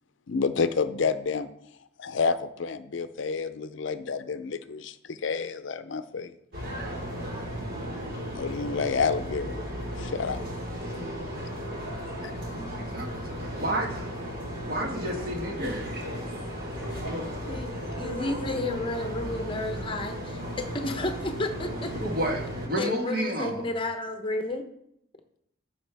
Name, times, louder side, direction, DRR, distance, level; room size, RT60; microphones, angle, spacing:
voice 1, 0.3-1.5 2.0-6.3 8.4-9.6 10.0-10.4, left 5 dB, 70° left, 12 dB, 0.5 m, -29 dB
sound 1, 6.5-22.7, equal, 75° right, 4.2 m, -35 dB
voice 2, 12.5-14.1 14.6-15.9 22.0-23.6, right 1 dB, 50° right, 2 dB, 1.5 m, -31 dB
voice 3, 17.5-21.9 22.8-24.6, left 2 dB, 25° left, 6 dB, 0.8 m, -32 dB
14.0 x 5.4 x 3.4 m, 0.75 s
head